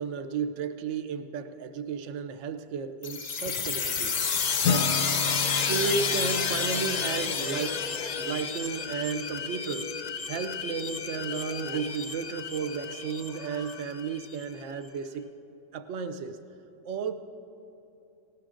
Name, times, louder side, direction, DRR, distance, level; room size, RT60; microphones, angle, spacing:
voice 1, 0.0-4.2 4.6-7.9 8.2-9.9 10.3-15.3 15.7-16.4 16.8-17.1, right 6 dB, 65° right, 9 dB, 0.9 m, -33 dB
sound 1, 3.0-14.4, left 5 dB, 50° left, 0.5 m, -31 dB
Acoustic guitar / Strum, 4.6-8.7, left 7 dB, 90° left, 1.0 m, -34 dB
19.0 x 18.5 x 2.6 m, 2.8 s
omnidirectional pair, 1.5 m